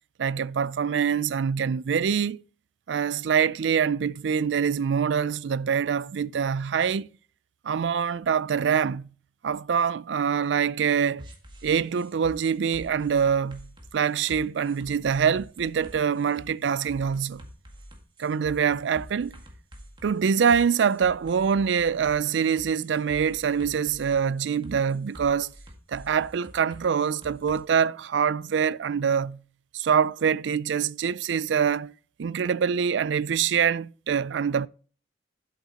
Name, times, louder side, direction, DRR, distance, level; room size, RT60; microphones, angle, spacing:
voice 1, 0.2-2.4 2.9-7.1 7.6-9.1 9.4-11.3 11.6-13.7 13.9-17.4 18.2-19.3 20.0-25.5 25.9-29.4 29.7-31.9 32.2-34.7, right 7 dB, 75° right, 0.4 m, -25 dB
sound 1, 11.2-27.6, equal, 25° right, 1.8 m, -47 dB
12.5 x 7.7 x 2.9 m
head